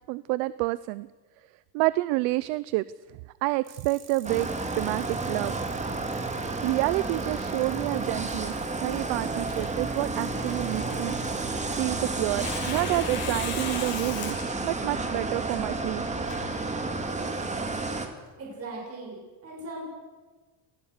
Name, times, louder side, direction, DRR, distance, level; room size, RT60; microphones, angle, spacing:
voice 1, 0.1-1.1 1.7-5.6 6.6-11.2 11.8-16.0, right 20 dB, 75° right, 17 dB, 0.8 m, -29 dB
sound 1, 3.6-13.5, right 8 dB, 55° right, 5.7 m, -51 dB
sound 2, 4.2-18.1, right 3 dB, 15° right, 2.5 m, -31 dB
Tearing, 9.4-17.1, left 7 dB, 50° left, 6.4 m, -40 dB
voice 2, 18.4-19.9, right 2 dB, 30° right, -1 dB, 7.6 m, -39 dB
26.5 x 19.5 x 6.7 m, 1.3 s
cardioid pair, 140°, 46 cm